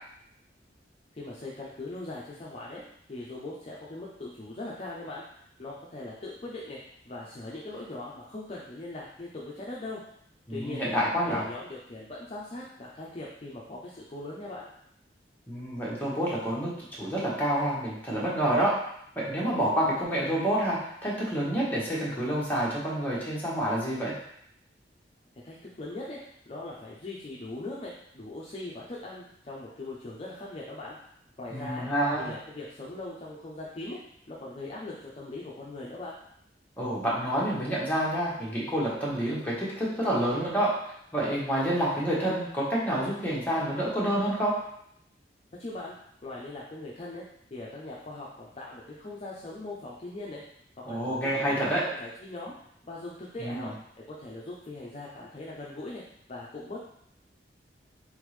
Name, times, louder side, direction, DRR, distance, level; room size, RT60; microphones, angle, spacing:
voice 1, 1.1-2.8 3.1-5.2 5.6-6.8 7.0-10.0 10.5-10.9 11.3-14.7 25.4-26.2 26.5-31.0 31.4-31.9 32.2-34.0 34.3-36.1 45.6-46.0 46.2-47.2 47.5-50.4 50.8-52.5 52.8-53.7 54.1-56.0 56.3-56.9, left 2 dB, 35° left, -5 dB, 0.5 m, -40 dB
voice 2, 10.5-11.4 15.5-16.7 17.0-18.7 19.1-24.1 31.5-32.3 36.8-40.7 41.1-44.5 50.9-51.8 53.4-53.7, right 1 dB, 10° left, -7 dB, 1.1 m, -28 dB
3.8 x 3.5 x 3.2 m, 0.72 s
head